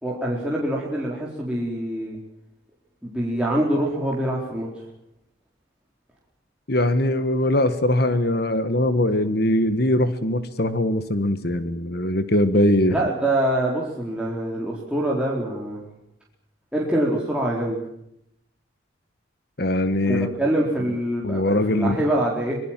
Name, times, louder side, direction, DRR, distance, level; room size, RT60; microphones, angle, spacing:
voice 1, 0.0-2.2 3.0-4.8 12.9-15.8 16.7-17.8 20.1-22.6, right 1 dB, 5° right, -4 dB, 4.2 m, -25 dB
voice 2, 6.7-12.9 19.6-20.3 21.2-22.0, left 1 dB, 50° left, 11 dB, 1.5 m, -21 dB
25.5 x 22.5 x 7.5 m, 0.78 s
head